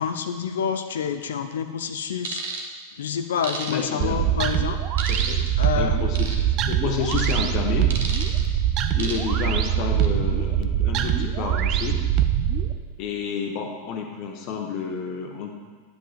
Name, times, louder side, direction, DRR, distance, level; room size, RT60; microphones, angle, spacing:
voice 1, 0.0-2.4 3.0-4.8 5.6-6.0, left 7 dB, 65° left, 8 dB, 0.5 m, -28 dB
sound 1, 2.2-2.6 3.4-4.1 5.0-5.5 6.2-6.4 7.1-7.4 7.9-8.4 9.0-9.4 9.8-10.1, right 4 dB, 60° right, 0.9 m, -32 dB
voice 2, 3.7-4.5 5.1-5.5 5.8-6.3 6.6-7.9 8.9-12.0 13.0-15.5, left 6 dB, 40° left, 2 dB, 0.9 m, -30 dB
sound 2, 4.0-12.7, right 10 dB, 35° right, 0.4 m, -23 dB
9.9 x 7.8 x 2.5 m, 1.5 s
figure-of-eight pair, 90°, 0 cm